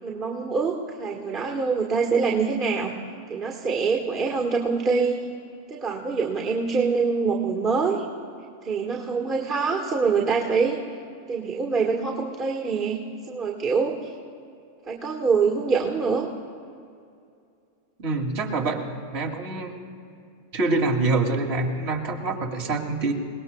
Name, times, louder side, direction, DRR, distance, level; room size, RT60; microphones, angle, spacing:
voice 1, 0.0-2.9 3.3-5.1 5.7-8.0 8.6-10.8 11.3-14.0 14.8-16.3, right 5 dB, 30° right, 1 dB, 1.6 m, -25 dB
voice 2, 18.0-18.8 19.1-19.8 20.5-23.1, right 3 dB, 50° right, 2 dB, 2.7 m, -25 dB
28.0 x 18.5 x 2.3 m, 2.4 s
figure-of-eight pair, 90°, 0 cm